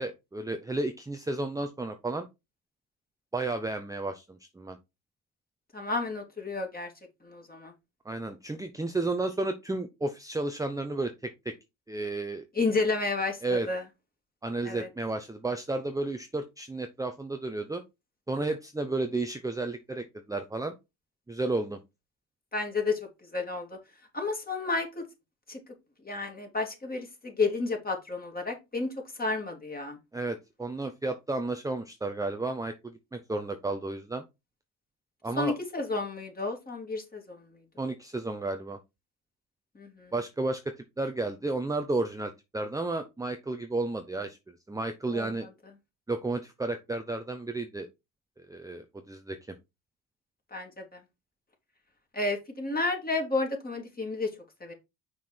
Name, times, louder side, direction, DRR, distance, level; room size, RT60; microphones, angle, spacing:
voice 1, 0.0-2.3 3.3-4.8 8.0-11.5 11.9-12.4 13.4-13.7 14.4-17.8 18.3-20.8 21.3-21.8 30.1-34.2 35.2-35.5 37.8-38.8 40.1-44.4 44.7-45.5 46.1-47.9 48.5-49.6, right 2 dB, 10° right, 6 dB, 0.8 m, -32 dB
voice 2, 5.7-6.9 7.2-7.7 12.5-13.8 14.6-14.9 22.5-23.0 23.3-23.8 24.1-25.0 25.5-25.6 26.0-28.9 29.2-30.0 35.4-37.5 39.7-40.1 45.1-45.3 50.5-51.0 52.1-54.3 54.6-54.7, left 3 dB, 25° left, 2 dB, 2.9 m, -31 dB
5.9 x 4.8 x 4.3 m, 0.23 s
supercardioid pair, 75°, 38 cm